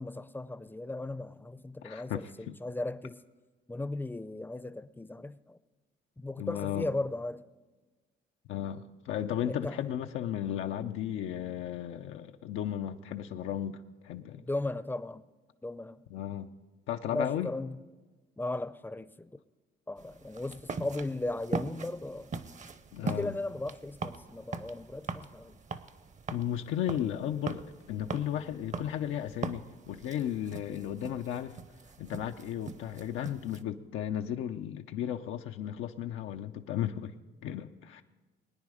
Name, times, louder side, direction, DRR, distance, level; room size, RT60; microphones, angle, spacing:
voice 1, 0.0-3.2 3.7-5.6 6.2-7.4 9.5-9.8 14.3-15.3 15.6-16.0 17.1-17.8 18.4-19.4 19.9-22.3 23.0-25.6, left 2 dB, 10° left, 0.6 m, -36 dB
voice 2, 1.8-2.6 6.4-6.9 8.5-14.4 16.1-16.5 16.9-17.5 22.9-23.3 26.3-31.5 32.0-37.1 37.4-38.0, left 10 dB, 90° left, 0.6 m, -35 dB
sound 1, 20.0-33.6, right 4 dB, 40° right, 0.8 m, -41 dB
22.5 x 9.7 x 4.9 m
cardioid pair, 90°, 20 cm